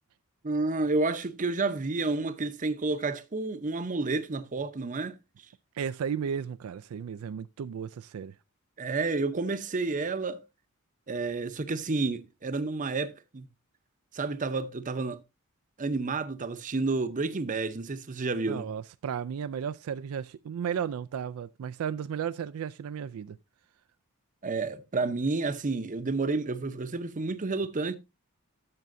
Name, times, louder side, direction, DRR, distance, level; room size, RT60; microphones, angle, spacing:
voice 1, 0.4-5.2 8.8-10.4 11.1-13.5 14.1-15.2 15.8-18.7 24.4-28.0, right 3 dB, 35° right, 0.7 m, -30 dB
voice 2, 5.7-8.3 18.4-23.4, right 7 dB, 75° right, 0.3 m, -34 dB
12.0 x 6.8 x 2.5 m
head